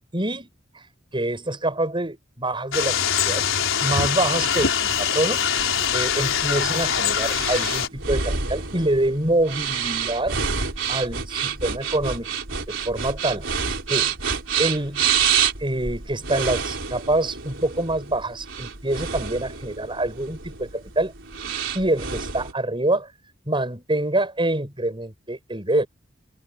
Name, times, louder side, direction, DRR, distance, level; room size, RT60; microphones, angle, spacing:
voice 1, 0.1-0.5 1.1-3.4 3.8-5.4 5.9-10.4 10.9-12.3 12.7-13.5 13.9-14.1 14.6-15.0 15.6-21.1 21.7-23.1 23.5-25.9, right 1 dB, 25° right, 7.1 m, -25 dB
sound 1, 2.7-7.9, left 7 dB, 90° left, 4.3 m, -23 dB
sound 2, 5.5-22.5, right 6 dB, 70° right, 4.5 m, -28 dB
head